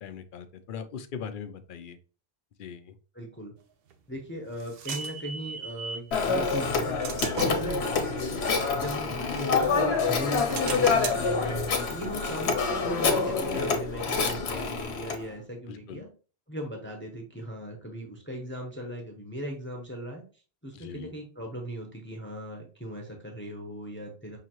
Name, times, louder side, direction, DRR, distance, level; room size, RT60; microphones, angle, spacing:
voice 1, 0.0-2.0 2.6-2.9 7.4-7.6 15.7-16.0 20.7-21.1, left 7 dB, 60° left, 10 dB, 0.7 m, -40 dB
voice 2, 3.1-3.5 4.1-7.0 7.4-7.8 8.7-16.1 16.5-20.2 20.6-24.4, right 1 dB, 10° left, 0 dB, 0.8 m, -38 dB
sound 1, 3.9-6.1 6.6-9.7 10.2-13.6, right 5 dB, 70° right, 0.8 m, -40 dB
Telephone, 6.1-15.2, left 4 dB, 85° left, 1.0 m, -27 dB
5.7 x 2.8 x 2.9 m, 0.37 s
omnidirectional pair, 1.1 m